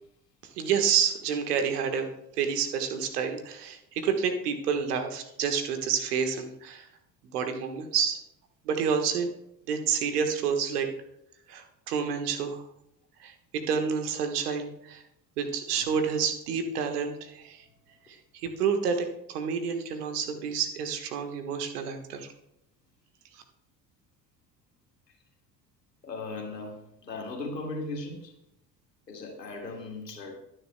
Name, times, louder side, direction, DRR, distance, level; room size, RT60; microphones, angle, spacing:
voice 1, 0.4-2.1 2.3-6.9 7.3-8.2 8.6-9.3 9.7-10.9 11.5-12.6 13.2-15.0 15.4-17.6 18.1-22.3 23.3-23.4, right 6 dB, 70° right, 6 dB, 1.5 m, -29 dB
voice 2, 26.0-28.3 29.1-30.4, left 2 dB, 85° left, 1 dB, 2.2 m, -37 dB
21.5 x 10.0 x 2.2 m, 0.82 s
figure-of-eight pair, 55°, 48 cm